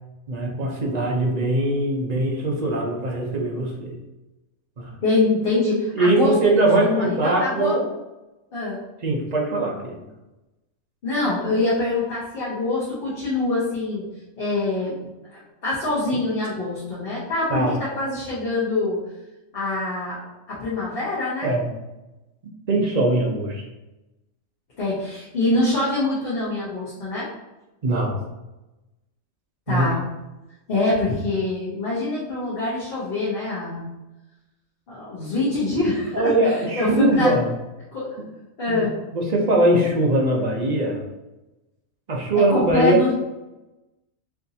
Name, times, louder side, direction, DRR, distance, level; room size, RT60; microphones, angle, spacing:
voice 1, 0.3-4.0 4.8-5.0 5.9-7.9 9.0-10.0 17.5-17.8 21.4-21.7 22.7-23.7 27.8-28.2 29.7-29.8 36.1-37.5 38.7-38.9 39.1-41.0 42.1-43.1, right 1 dB, 45° right, 0 dB, 0.6 m, -21 dB
voice 2, 5.0-6.3 6.8-7.8 8.5-8.8 11.0-14.1 14.4-14.9 15.3-19.0 19.5-20.2 20.5-21.5 24.8-27.3 29.7-30.0 30.7-33.9 34.9-36.3 36.7-37.4 37.9-38.1 38.6-38.9 42.3-43.1, left 2 dB, 45° left, -9 dB, 1.1 m, -24 dB
4.7 x 2.6 x 2.7 m, 1.0 s
omnidirectional pair, 1.4 m